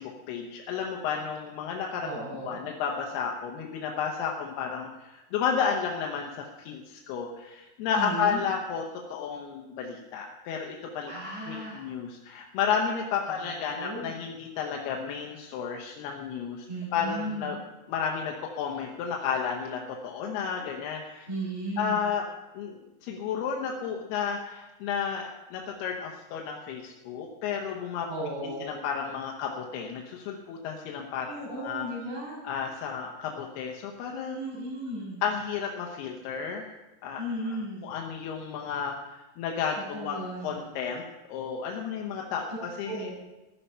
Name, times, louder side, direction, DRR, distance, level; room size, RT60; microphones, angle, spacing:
voice 1, 0.0-2.1 2.4-11.1 11.5-16.7 16.9-17.6 17.9-21.3 21.8-22.3 22.5-28.1 28.6-31.9 32.4-34.4 35.2-36.7 37.0-37.2 37.8-41.0 41.3-43.1, left 6 dB, 75° left, 0 dB, 2.6 m, -32 dB
voice 2, 2.0-2.6 7.9-8.4 11.1-11.8 13.3-14.1 16.7-17.5 21.3-22.0 28.1-28.7 31.3-32.4 34.3-35.2 37.2-37.9 39.9-40.6 42.8-43.1, right 1 dB, 40° right, -5 dB, 7.4 m, -35 dB
15.5 x 11.5 x 5.6 m, 1.1 s
omnidirectional pair, 5.6 m